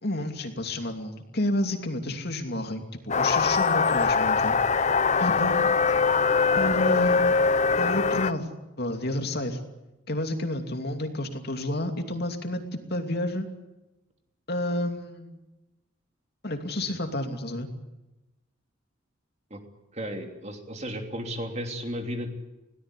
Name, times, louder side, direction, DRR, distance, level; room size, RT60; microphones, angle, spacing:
voice 1, 0.0-4.6 5.2-5.7 6.5-7.4 7.8-8.5 8.8-9.6 10.1-13.5 14.5-15.4 16.4-17.7, left 1 dB, 50° left, 5 dB, 2.7 m, -30 dB
sound 1, 3.1-8.3, left 4 dB, 35° left, 0.8 m, -22 dB
voice 2, 19.9-22.3, equal, 35° right, 4 dB, 3.2 m, -34 dB
21.5 x 18.0 x 10.0 m, 1.0 s
head